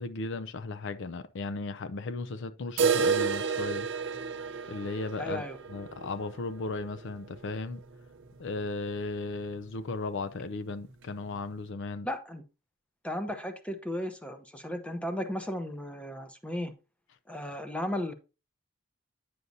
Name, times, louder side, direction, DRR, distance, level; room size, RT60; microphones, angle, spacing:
voice 1, 0.0-3.9 4.7-5.4 5.7-7.8 8.4-12.1, left 3 dB, 60° left, 0.5 m, -36 dB
sound 1, 2.8-8.6 8.9-9.0 9.3-9.4 9.9-10.0 10.9-11.0, right 6 dB, 60° right, 0.7 m, -31 dB
voice 2, 5.2-5.6 12.0-12.4 13.0-16.7 17.3-18.1, left 1 dB, 5° left, 0.9 m, -35 dB
9.4 x 6.7 x 2.7 m
head